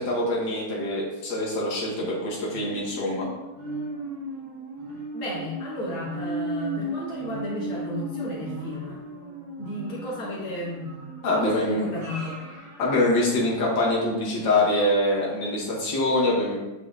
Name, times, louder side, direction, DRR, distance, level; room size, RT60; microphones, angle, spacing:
voice 1, 0.0-3.3 11.2-11.9 12.8-16.6, left 1 dB, 60° left, -5 dB, 2.2 m, -24 dB
sound 1, 2.5-14.0 14.4-14.5, right 2 dB, 60° right, 2.0 m, -36 dB
voice 2, 5.1-9.0 9.6-10.8 11.3-12.4, left 1 dB, 80° left, -6 dB, 2.3 m, -33 dB
8.0 x 4.8 x 2.5 m, 1.0 s
omnidirectional pair, 2.3 m